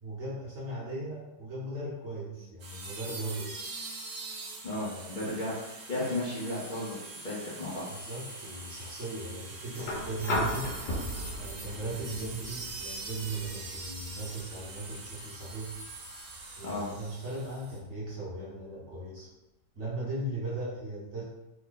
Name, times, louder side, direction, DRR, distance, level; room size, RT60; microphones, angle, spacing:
voice 1, 0.0-3.6 4.8-5.3 7.9-10.7 11.3-15.8 16.6-19.3 19.7-21.2, right 2 dB, 45° right, -8 dB, 1.2 m, -38 dB
sound 1, 2.6-17.8, right 3 dB, 80° right, 1.3 m, -43 dB
voice 2, 4.6-7.8 16.6-16.9, left 1 dB, 50° left, -8 dB, 0.6 m, -34 dB
sound 2, 9.8-17.8 19.2-19.3, left 1 dB, 85° left, 1.4 m, -38 dB
3.4 x 2.2 x 3.7 m, 0.95 s
omnidirectional pair, 1.8 m